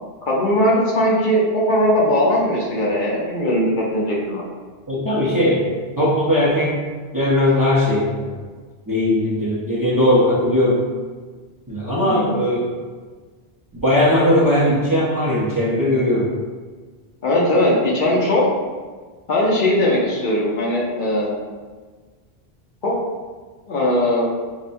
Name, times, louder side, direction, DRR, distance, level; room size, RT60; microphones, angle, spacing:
voice 1, 0.2-4.4 12.0-12.4 17.2-18.5 19.3-21.4 22.8-22.9 23.7-24.3, left 1 dB, 55° left, -5 dB, 0.8 m, -19 dB
voice 2, 4.9-6.8 7.1-8.3 8.9-10.8 11.7-12.7 13.8-16.3, left 1 dB, 25° right, -8 dB, 0.5 m, -18 dB
5.3 x 2.2 x 2.6 m, 1.4 s
omnidirectional pair, 1.1 m